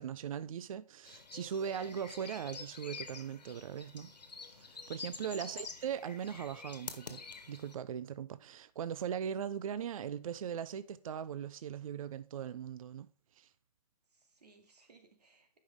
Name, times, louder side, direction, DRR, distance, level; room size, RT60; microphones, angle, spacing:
voice 1, 0.0-4.1 4.4-13.1 13.4-13.5, right 8 dB, 55° right, 0.4 m, -40 dB
sound 1, 1.0-7.7, left 4 dB, 90° left, 1.4 m, -48 dB
voice 2, 5.0-5.7 14.1-15.6, right 4 dB, 80° right, 2.2 m, -62 dB
9.7 x 5.5 x 3.5 m
hypercardioid pair, 150°, 21 cm